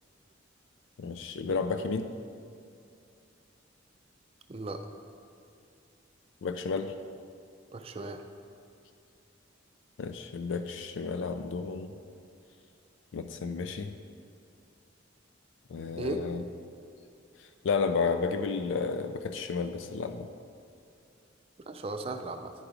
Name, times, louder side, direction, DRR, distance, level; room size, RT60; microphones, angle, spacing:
voice 1, 1.0-2.1 6.4-7.0 10.0-11.9 13.1-14.0 15.7-16.4 17.6-20.3, left 5 dB, 70° left, 8 dB, 0.3 m, -32 dB
voice 2, 4.5-4.9 7.7-8.2 16.0-16.3 21.7-22.5, right 2 dB, 30° right, 7 dB, 0.4 m, -36 dB
10.5 x 4.8 x 5.0 m, 2.5 s
head